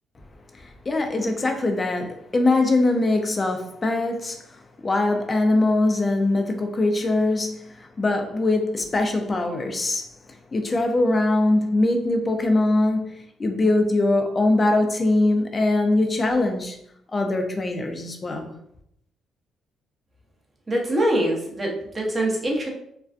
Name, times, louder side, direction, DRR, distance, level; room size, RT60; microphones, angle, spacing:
voice 1, 0.5-4.4 4.8-10.1 10.5-16.8 17.1-18.5, left 2 dB, 30° left, 0.4 m, -22 dB
voice 2, 20.7-22.7, right 1 dB, 25° right, 0.7 m, -24 dB
2.4 x 2.2 x 2.4 m
cardioid pair, 90°, 0 cm